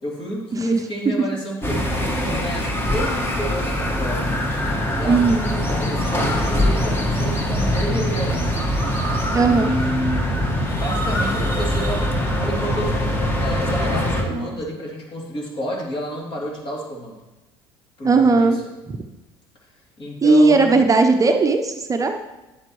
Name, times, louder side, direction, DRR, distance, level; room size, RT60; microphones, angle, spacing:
voice 1, 0.0-4.3 5.0-9.1 9.4-10.4 10.7-12.1 12.4-17.2 18.0-18.6 20.0-20.8, equal, 45° left, -2 dB, 3.0 m, -30 dB
sound 1, 1.6-14.2, equal, 20° left, 1.6 m, -22 dB
voice 2, 5.0-5.5 9.3-9.7 14.3-14.6 18.0-18.6 18.9-19.0 20.2-22.2, right 3 dB, 25° right, 5 dB, 0.7 m, -17 dB
10.0 x 7.4 x 3.1 m, 1.0 s
hypercardioid pair, 75°, 13 cm